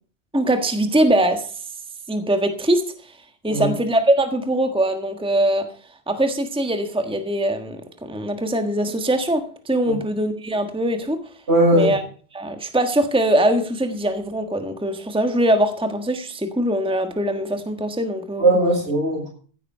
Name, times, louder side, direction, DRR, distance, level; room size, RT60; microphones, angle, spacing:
voice 1, 0.3-1.5 2.1-2.9 3.4-5.7 6.1-11.2 11.7-12.0 12.3-18.6, right 1 dB, 5° right, 1.4 m, -22 dB
voice 2, 11.5-11.9 18.4-19.3, right 1 dB, 75° right, 8.0 m, -18 dB
15.5 x 9.2 x 5.6 m
omnidirectional pair, 1.1 m